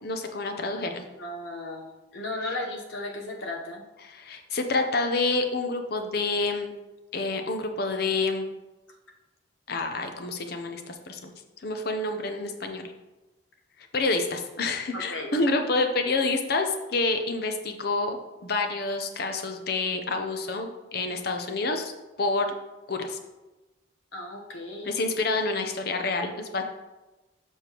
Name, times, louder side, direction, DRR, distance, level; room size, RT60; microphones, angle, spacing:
voice 1, 0.0-1.0 4.0-6.7 7.1-8.5 9.7-11.3 11.6-12.9 13.9-21.9 22.2-22.5 22.9-23.2 24.8-26.6, left 3 dB, 50° left, 6 dB, 0.7 m, -28 dB
voice 2, 1.2-3.8 14.9-15.4 24.1-24.9, left 2 dB, 75° left, 1 dB, 1.0 m, -35 dB
6.9 x 6.3 x 3.0 m, 1.1 s
head